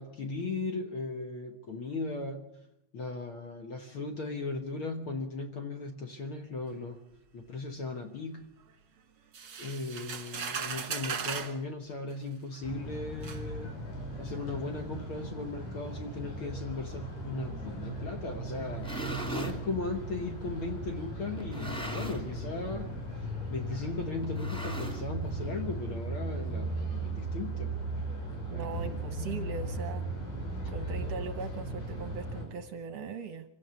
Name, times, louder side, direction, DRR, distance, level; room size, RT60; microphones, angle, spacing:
voice 1, 0.0-2.5 2.9-7.0 7.3-8.4 9.6-13.8 14.2-18.9 19.2-27.8 28.5-29.0, left 3 dB, 55° left, 6 dB, 1.6 m, -37 dB
sound 1, 9.3-11.6 12.5-12.6 13.2-13.4, right 6 dB, 40° right, 1.8 m, -37 dB
sound 2, 12.6-32.4, right 2 dB, 85° left, 7.3 m, -37 dB
sound 3, 18.6-19.6 20.4-20.5 21.4-22.4 22.7-23.0 23.2-23.3 24.2-25.3, right 1 dB, ahead, 2.5 m, -39 dB
voice 2, 28.5-30.0 30.7-33.4, right 5 dB, 65° right, 10 dB, 1.8 m, -40 dB
25.5 x 16.0 x 7.0 m, 0.79 s
omnidirectional pair, 3.7 m